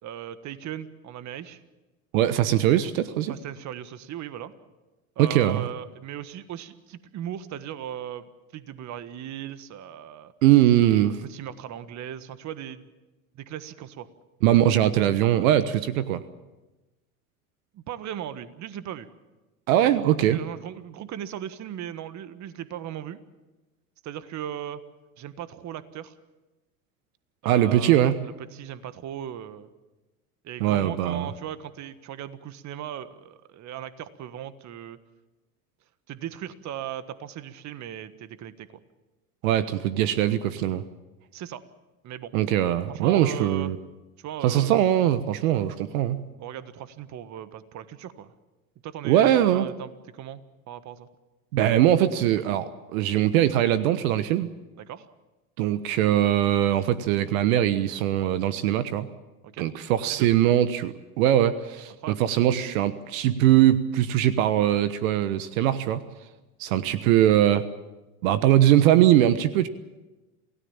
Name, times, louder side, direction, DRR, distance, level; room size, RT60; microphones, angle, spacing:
voice 1, 0.0-1.6 3.3-4.5 5.1-10.3 11.2-12.9 13.3-14.1 17.7-19.1 20.3-23.2 24.0-24.8 25.2-26.1 27.4-29.7 30.4-35.0 36.1-38.8 41.3-41.6 42.0-42.3 42.9-43.7 44.2-44.8 46.4-48.3 48.8-50.4 50.7-51.1 54.8-55.1 59.4-59.7 60.1-60.3 62.0-62.2, right 10 dB, 40° right, 13 dB, 1.5 m, -38 dB
voice 2, 2.1-3.3 5.2-5.7 10.4-11.2 14.4-16.2 19.7-20.4 27.4-28.1 30.6-31.3 39.4-40.8 42.3-43.8 44.4-46.2 49.0-49.7 51.5-54.5 55.6-59.1 59.6-66.0 66.6-67.7 68.2-69.7, right 12 dB, 65° right, 13 dB, 1.3 m, -21 dB
28.0 x 17.0 x 7.3 m, 1.1 s
hypercardioid pair, 95°, 44 cm